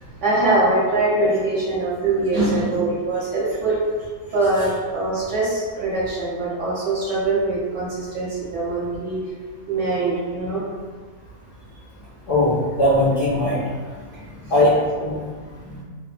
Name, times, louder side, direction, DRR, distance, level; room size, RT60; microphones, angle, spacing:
voice 1, 0.0-3.8 4.3-9.2 9.7-10.6 14.1-14.5 15.2-15.8, right 2 dB, 55° right, -8 dB, 1.0 m, -23 dB
voice 2, 12.3-13.6 14.5-15.2, left 1 dB, 70° left, -9 dB, 0.5 m, -19 dB
2.7 x 2.1 x 2.5 m, 1.5 s
omnidirectional pair, 1.7 m